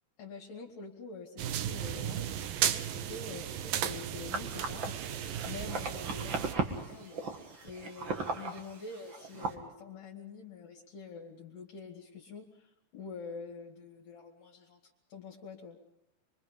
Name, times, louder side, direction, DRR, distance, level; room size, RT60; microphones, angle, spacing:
voice 1, 0.2-2.3 2.6-7.2 7.6-15.8, left 4 dB, 65° left, -1 dB, 3.9 m, -46 dB
sound 1, 1.4-6.5, right 10 dB, 75° right, 2.5 m, -35 dB
sound 2, 4.3-9.6, right 4 dB, 40° right, 2.1 m, -38 dB
26.5 x 23.5 x 5.3 m, 0.86 s
omnidirectional pair, 4.3 m